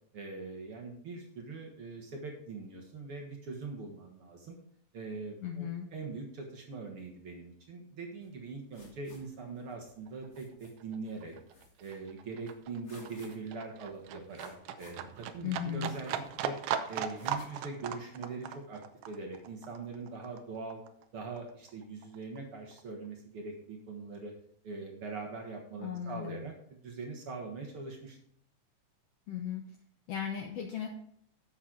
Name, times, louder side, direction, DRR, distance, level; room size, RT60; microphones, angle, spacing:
voice 1, 0.1-4.6 4.9-11.3 11.8-16.6 16.9-20.8 21.1-24.3 24.6-28.2, right 3 dB, 55° right, 1 dB, 1.7 m, -42 dB
voice 2, 5.4-5.9 15.4-15.9 25.8-26.4 29.3-29.7 30.1-30.9, left 9 dB, 80° left, 2 dB, 1.4 m, -36 dB
sound 1, 8.2-17.5, left 2 dB, 55° left, 0.7 m, -60 dB
Livestock farm animals working animals, 9.7-9.8 10.1-21.0 21.4-22.4 22.7-22.8, right 9 dB, 75° right, 2.1 m, -39 dB
11.0 x 7.5 x 3.9 m, 0.66 s
omnidirectional pair, 4.2 m